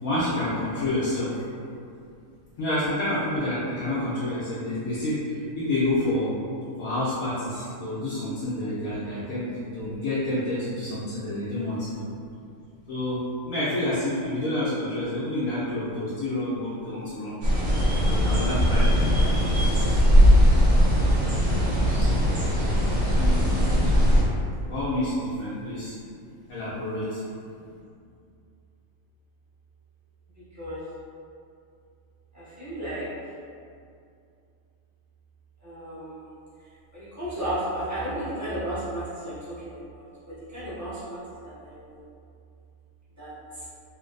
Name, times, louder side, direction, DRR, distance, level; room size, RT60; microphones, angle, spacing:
voice 1, 0.0-1.4 2.6-6.3 6.8-12.1 12.9-17.3 18.0-19.8 22.0-22.1 23.2-23.9 24.7-26.0 26.5-27.2, left 1 dB, 80° left, -11 dB, 1.2 m, -29 dB
sound 1, 17.4-24.2, equal, 55° right, 1.0 m, -20 dB
voice 2, 21.5-22.0 30.5-30.8 32.3-33.1 35.6-36.3 36.9-42.1 43.2-43.6, right 1 dB, 15° right, -13 dB, 1.1 m, -33 dB
3.2 x 2.7 x 2.5 m, 2.4 s
omnidirectional pair, 1.4 m